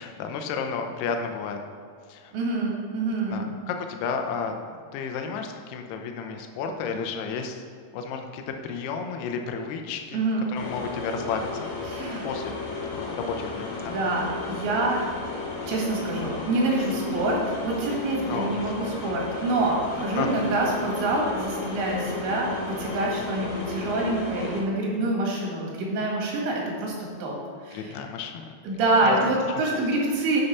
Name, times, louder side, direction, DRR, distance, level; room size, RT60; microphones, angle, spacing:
voice 1, 0.0-1.6 2.1-2.3 3.3-7.6 7.9-12.6 13.0-13.9 18.3-18.7 20.2-20.3 23.2-23.3 27.7-28.4 29.0-29.2, left 5 dB, 80° left, 4 dB, 2.7 m, -32 dB
voice 2, 2.3-3.5 10.1-10.5 11.9-12.3 13.8-15.0 15.7-26.9 27.2-27.4 27.6-28.0 28.6-30.4, right 2 dB, 85° right, -2 dB, 4.2 m, -26 dB
sound 1, 10.5-24.6, left 4 dB, 55° left, 2.6 m, -34 dB
9.7 x 5.7 x 5.7 m, 2.1 s
omnidirectional pair, 5.0 m